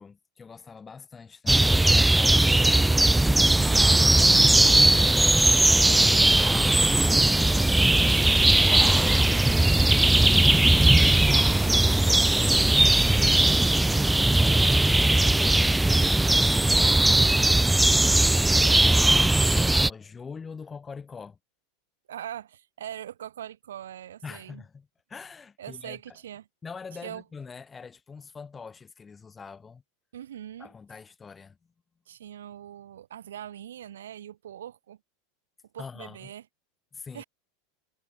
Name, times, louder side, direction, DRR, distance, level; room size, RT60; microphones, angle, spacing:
voice 1, 0.0-3.0 4.0-7.6 8.5-10.2 10.5-11.7 12.1-21.4 24.2-26.2 26.6-29.8 30.6-31.6 35.8-36.3 36.9-37.2, left 5 dB, 20° left, 3.1 m, -44 dB
sound 1, 1.5-19.9, right 2 dB, 5° right, 0.3 m, -19 dB
voice 2, 3.6-4.0 8.1-8.4 22.1-24.6 25.6-26.4 27.0-27.2 30.1-30.7 32.1-35.0 35.7-36.4 37.1-37.2, right 10 dB, 80° right, 6.7 m, -41 dB
hypercardioid pair, 100°, 0 cm